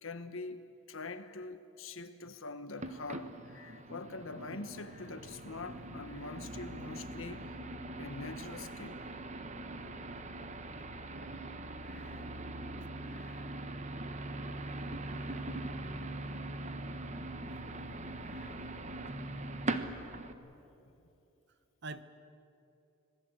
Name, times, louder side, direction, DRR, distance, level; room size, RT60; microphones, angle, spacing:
voice 1, 0.0-7.4 8.0-9.0 11.8-12.3 13.1-13.5 15.1-15.4 17.6-17.8 18.2-18.6 20.4-20.5, left 3 dB, 75° left, 1.4 m, -45 dB
sound 1, 2.8-20.3, right 2 dB, 35° right, 1.1 m, -41 dB
voice 2, 11.1-11.7 21.8-22.0, right 3 dB, 55° right, 1.1 m, -46 dB
26.0 x 20.0 x 8.2 m
head